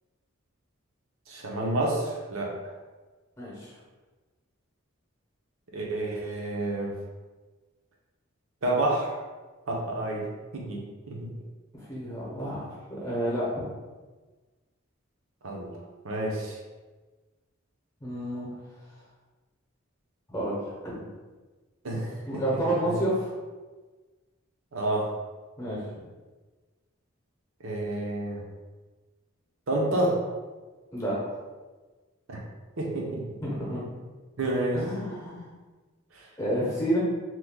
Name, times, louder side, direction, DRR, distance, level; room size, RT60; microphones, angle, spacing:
voice 1, 1.3-2.5 5.7-6.9 8.6-9.1 9.7-10.2 10.5-11.3 15.4-15.7 16.0-16.6 21.8-22.4 22.8-23.0 24.7-25.1 27.6-28.4 29.7-30.2 32.3-32.4 32.8-33.2 34.4-34.8 36.1-36.3, right 1 dB, 80° right, -2 dB, 0.7 m, -29 dB
voice 2, 3.4-3.7 11.7-13.6 18.0-18.5 20.3-21.1 22.3-23.3 25.6-25.8 30.9-31.3 33.4-33.8 34.7-35.5 36.4-37.0, right 1 dB, 15° left, -7 dB, 0.8 m, -30 dB
3.0 x 2.2 x 3.6 m, 1.3 s
head